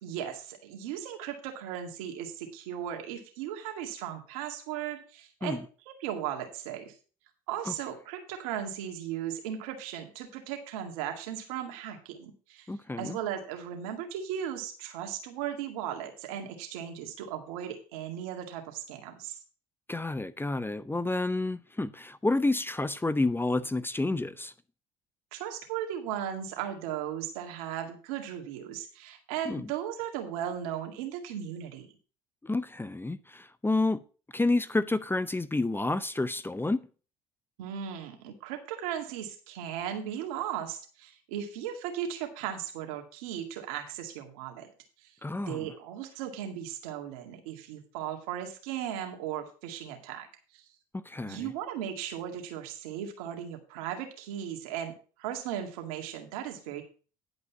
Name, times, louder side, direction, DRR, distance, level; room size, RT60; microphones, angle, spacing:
voice 1, 0.0-6.9 7.5-12.7 13.0-19.4 25.3-31.9 37.6-44.7 45.0-45.1 45.5-50.3 50.5-50.6 51.3-54.9 55.2-56.8, right 10 dB, 85° right, 2.1 m, -37 dB
voice 2, 12.7-13.2 19.9-24.5 29.5-29.7 32.4-34.0 34.3-36.9 45.2-45.7 50.9-51.5, left 2 dB, 10° left, 0.6 m, -29 dB
11.0 x 5.2 x 5.8 m
hypercardioid pair, 70°, 18 cm